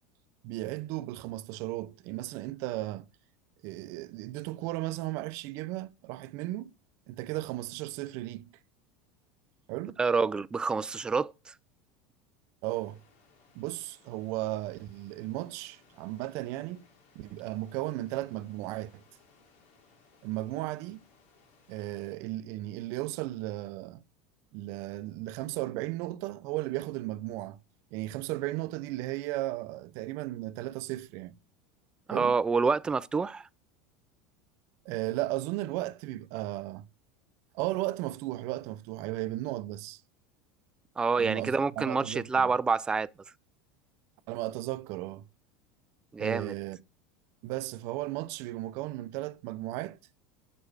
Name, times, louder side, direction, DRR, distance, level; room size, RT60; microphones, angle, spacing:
voice 1, 0.4-3.1 3.6-6.7 7.1-8.5 9.7-10.0 12.6-13.0 13.5-16.8 17.1-19.0 20.2-21.0 21.7-24.0 24.5-27.6 27.9-31.3 32.1-32.3 34.8-36.9 37.5-40.0 41.2-42.5 44.3-45.3 46.2-46.8 47.4-50.0, right 17 dB, 60° right, 0.6 m, -35 dB
voice 2, 10.0-11.5 32.1-33.5 41.0-43.1 46.1-46.5, right 4 dB, 15° right, 0.4 m, -27 dB
sound 1, 12.6-22.1, left 4 dB, 70° left, 2.4 m, -63 dB
6.6 x 6.0 x 4.7 m
supercardioid pair, 105°, 5 cm